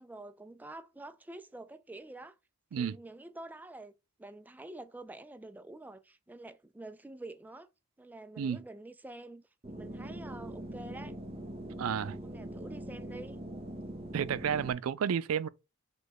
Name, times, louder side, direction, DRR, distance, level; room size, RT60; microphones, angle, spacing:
voice 1, 0.0-2.4 2.7-3.9 4.2-7.7 8.0-11.1 12.2-13.4, right 2 dB, 10° right, 0.3 m, -47 dB
sound 1, 9.6-14.7, right 1 dB, 30° right, 0.7 m, -42 dB
voice 2, 11.8-12.2 14.1-15.5, right 7 dB, 90° right, 0.4 m, -31 dB
5.0 x 2.2 x 4.0 m
head